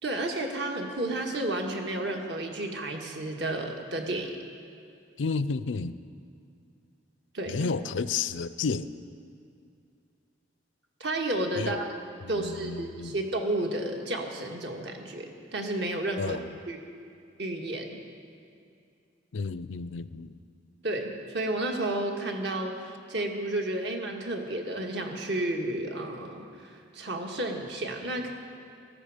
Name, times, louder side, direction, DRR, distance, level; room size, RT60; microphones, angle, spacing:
voice 1, 0.0-4.3 7.3-7.7 11.0-11.9 12.3-16.4 16.7-16.8 17.4-18.0 20.8-21.1 21.3-28.3, right 1 dB, 65° right, 2 dB, 1.7 m, -32 dB
voice 2, 5.2-6.0 7.5-8.9 11.6-11.8 12.2-13.2 16.2-16.5 19.3-20.4, left 4 dB, 80° left, 15 dB, 0.5 m, -31 dB
18.0 x 13.5 x 5.0 m, 2.5 s
head